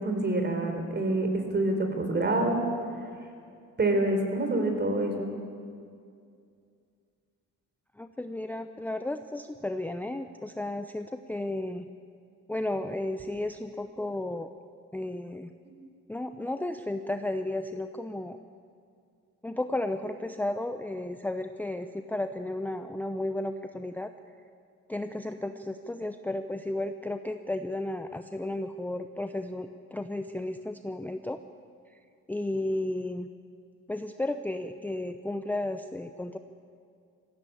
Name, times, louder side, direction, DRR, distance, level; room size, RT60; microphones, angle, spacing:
voice 1, 0.0-2.6 3.8-5.3, right 2 dB, 35° right, 5 dB, 4.1 m, -27 dB
voice 2, 8.0-11.9 12.5-14.5 14.9-15.5 16.1-18.4 19.4-24.1 24.9-31.4 32.3-33.3 33.9-36.4, left 1 dB, 5° left, 8 dB, 0.7 m, -33 dB
19.0 x 15.5 x 8.7 m, 2.3 s
cardioid pair, 90°, 30 cm